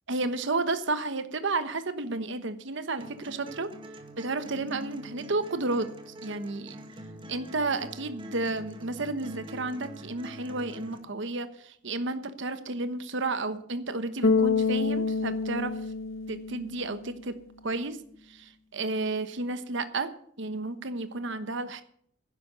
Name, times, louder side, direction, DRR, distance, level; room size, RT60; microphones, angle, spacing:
voice 1, 0.1-3.7 4.2-6.8 7.3-15.7 16.3-17.3 17.6-18.0 18.3-20.1 20.4-21.8, right 3 dB, 65° right, 11 dB, 1.2 m, -32 dB
sound 1, 3.0-11.0, equal, 25° right, 1.9 m, -45 dB
Bass guitar, 14.2-17.4, left 4 dB, 85° left, 1.8 m, -27 dB
11.0 x 10.5 x 6.8 m, 0.63 s
head